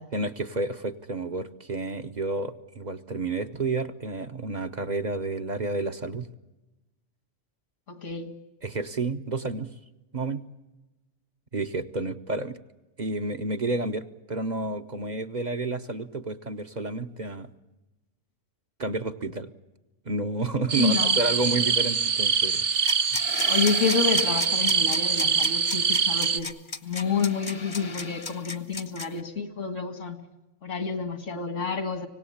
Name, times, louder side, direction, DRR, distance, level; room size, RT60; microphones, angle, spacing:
voice 1, 0.1-6.3 8.6-9.7 10.1-10.4 11.5-12.6 13.0-17.5 18.8-19.5 20.0-22.7, right 3 dB, 40° right, 7 dB, 0.9 m, -30 dB
voice 2, 7.9-8.3 20.8-21.2 23.5-26.5 26.8-30.2 30.6-32.1, left 5 dB, 85° left, 8 dB, 2.3 m, -29 dB
sound 1, 20.7-26.4, right 5 dB, 70° right, 1.3 m, -24 dB
sound 2, 22.7-29.2, left 4 dB, 30° left, 0.8 m, -35 dB
25.5 x 18.5 x 8.6 m, 1.0 s
omnidirectional pair, 1.2 m